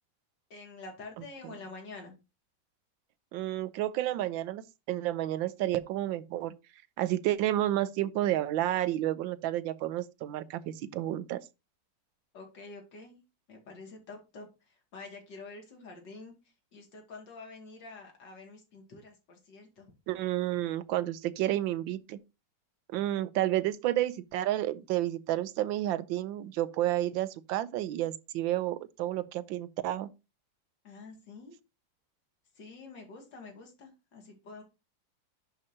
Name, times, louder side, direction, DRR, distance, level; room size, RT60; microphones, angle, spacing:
voice 1, 0.5-2.1 12.3-13.2 13.5-19.9 30.8-31.6 32.5-34.6, left 3 dB, 65° left, 2.9 m, -48 dB
voice 2, 3.3-6.5 7.0-11.4 20.1-22.2 22.9-30.1, right 14 dB, 85° right, 1.4 m, -31 dB
11.0 x 4.9 x 2.8 m
omnidirectional pair, 2.1 m